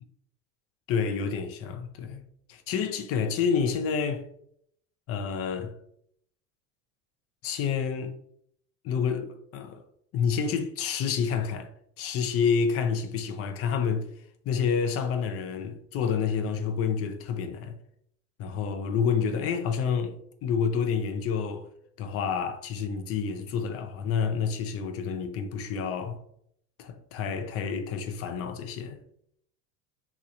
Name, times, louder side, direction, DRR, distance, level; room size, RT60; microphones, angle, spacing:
voice 1, 0.9-2.2 2.5-4.3 5.1-5.7 7.4-8.1 8.8-9.8 10.1-11.7 12.0-14.1 14.5-17.8 18.4-21.7 22.0-26.2 26.8-29.0, left 6 dB, 35° left, 0.4 m, -29 dB
3.0 x 2.9 x 2.5 m
hypercardioid pair, 90°, 44 cm